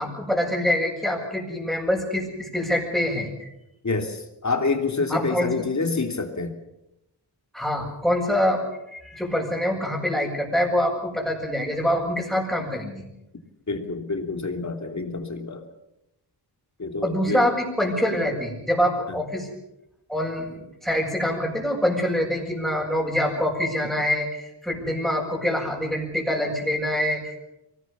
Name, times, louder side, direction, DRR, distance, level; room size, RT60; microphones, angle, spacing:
voice 1, 0.0-3.5 5.1-5.5 7.5-8.6 8.9-13.0 17.0-19.5 20.1-27.4, left 1 dB, ahead, -6 dB, 6.7 m, -25 dB
voice 2, 3.8-6.5 13.7-15.6 16.8-17.5 19.1-19.2, left 3 dB, 40° left, 5 dB, 3.2 m, -27 dB
24.0 x 18.5 x 7.1 m, 0.87 s
wide cardioid pair, 80°, 42 cm